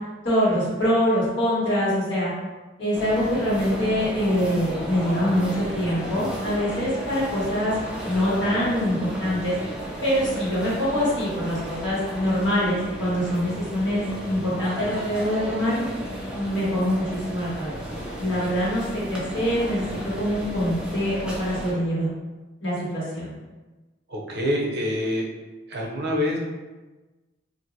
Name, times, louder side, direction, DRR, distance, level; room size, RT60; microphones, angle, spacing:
voice 1, 0.2-2.3 2.8-7.7 8.0-9.5 10.0-15.8 16.3-17.8 18.2-19.8 20.2-22.1 22.6-23.3, equal, 70° left, -8 dB, 1.4 m, -24 dB
sound 1, 2.9-21.7, equal, 5° right, 0.4 m, -34 dB
voice 2, 24.1-25.3 25.7-26.4, left 1 dB, 60° right, -1 dB, 0.6 m, -26 dB
3.0 x 2.5 x 2.6 m, 1.2 s
head